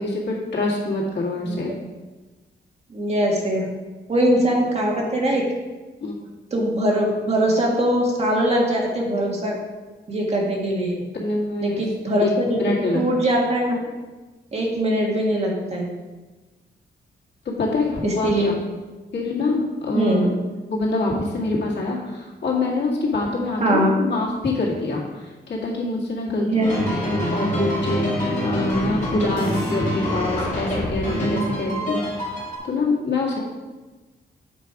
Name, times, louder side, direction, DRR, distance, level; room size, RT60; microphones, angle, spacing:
voice 1, 0.0-1.8 6.0-6.1 11.1-11.8 12.2-12.3 12.6-13.0 17.5-18.5 19.1-20.3 20.7-26.5 27.0-32.3 32.6-33.4, left 2 dB, 85° left, -3 dB, 2.0 m, -25 dB
voice 2, 2.9-3.7 4.1-5.5 6.5-9.6 10.1-11.0 11.6-12.6 12.9-13.8 14.5-15.9 18.0-18.5 19.9-20.2 23.6-23.9 26.4-26.7 29.2-29.4 31.8-31.9, right 1 dB, 35° right, -2 dB, 1.6 m, -21 dB
sound 1, 26.6-32.6, left 1 dB, 45° left, 2.4 m, -25 dB
8.1 x 5.0 x 4.8 m, 1.2 s
wide cardioid pair, 165°, 18 cm